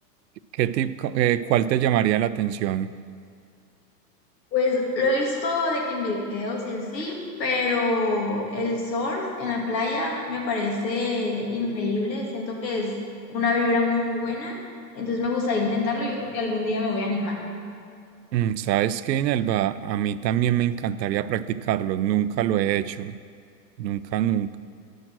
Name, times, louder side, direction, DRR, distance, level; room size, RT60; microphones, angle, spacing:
voice 1, 0.5-3.0 18.3-23.2 23.8-24.6, right 11 dB, 85° right, 15 dB, 0.6 m, -24 dB
voice 2, 4.5-13.0 13.3-14.5 14.9-17.4, left 3 dB, 80° left, -1 dB, 2.7 m, -26 dB
11.0 x 6.4 x 6.1 m, 2.4 s
hypercardioid pair, 130°, 49 cm